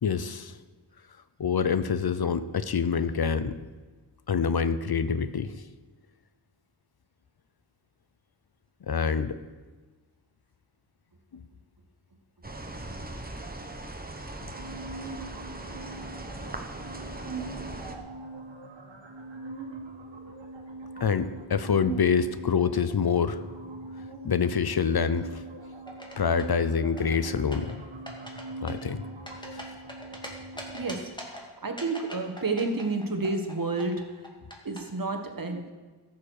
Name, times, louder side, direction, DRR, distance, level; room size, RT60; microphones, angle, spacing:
voice 1, 0.0-0.5 1.4-3.6 4.3-5.5 8.9-9.4 11.3-11.4 14.4-14.5 21.0-23.4 24.2-25.4 26.2-27.8 28.6-29.0 29.5-29.7, left 6 dB, 60° left, 13 dB, 0.7 m, -26 dB
sound 1, 12.4-18.0, right 2 dB, 20° right, 1.3 m, -39 dB
sound 2, 14.6-31.0, right 3 dB, 90° right, 1.7 m, -42 dB
sound 3, 25.9-26.6 27.0-27.7 28.1-28.4 28.7-30.3 30.6-31.4 31.8-33.5 33.8-34.8, left 1 dB, 10° left, 2.3 m, -41 dB
voice 2, 30.7-34.3 34.6-35.7, right 3 dB, 50° right, 5 dB, 1.6 m, -31 dB
13.5 x 7.5 x 6.5 m, 1.3 s
wide cardioid pair, 70°, 44 cm